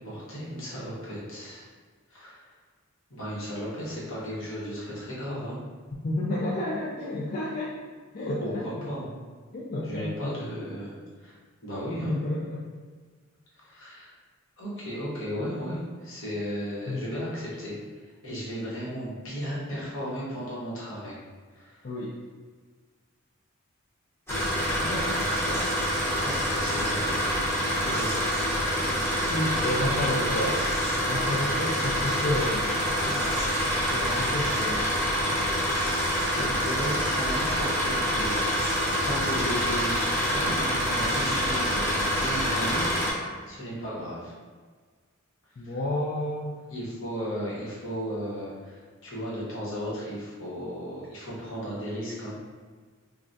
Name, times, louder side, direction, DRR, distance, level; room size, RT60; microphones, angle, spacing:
voice 1, 0.0-1.7 2.1-2.4 3.1-5.6 8.4-9.2 9.8-11.3 11.6-12.2 13.6-14.1 14.6-17.8 18.2-21.2 21.5-21.8 24.8-25.7 26.1-28.3 30.1-30.5 36.3-38.5 39.0-44.3 45.6-45.8 46.7-52.4, equal, 65° left, -7 dB, 1.1 m, -35 dB
voice 2, 6.0-7.8 8.1-8.6 9.5-10.3 12.0-12.6 16.9-17.0 21.8-22.1 29.3-30.5 31.0-34.8 45.6-46.6, left 1 dB, 45° left, -6 dB, 0.4 m, -31 dB
sound 1, 24.3-43.1, equal, 10° left, 0.8 m, -26 dB
3.3 x 2.4 x 2.6 m, 1.5 s
head